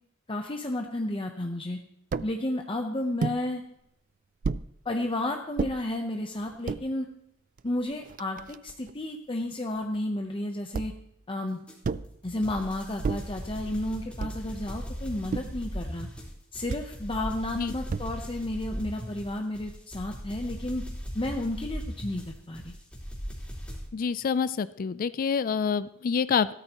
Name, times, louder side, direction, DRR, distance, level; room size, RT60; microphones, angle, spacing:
voice 1, 0.3-1.8 2.2-3.6 4.8-7.1 7.6-10.9 11.3-11.6 12.2-16.1 16.5-20.8 21.1-22.7, left 1 dB, 25° left, 3 dB, 0.8 m, -32 dB
sound 1, 2.1-2.3 3.2-3.4 4.4-4.7 5.6-5.8 6.5-6.8 7.6-7.7 7.9-8.9 10.7-11.1 11.8-12.2 13.0-13.4 14.2-14.5 15.3-15.7 16.7-16.9 17.9-18.3, right 4 dB, 40° right, 0.3 m, -32 dB
sound 2, 11.7-23.9, equal, 5° left, 3.4 m, -39 dB
voice 2, 23.9-26.5, left 6 dB, 45° left, 16 dB, 0.4 m, -27 dB
16.5 x 13.0 x 3.0 m, 0.78 s
head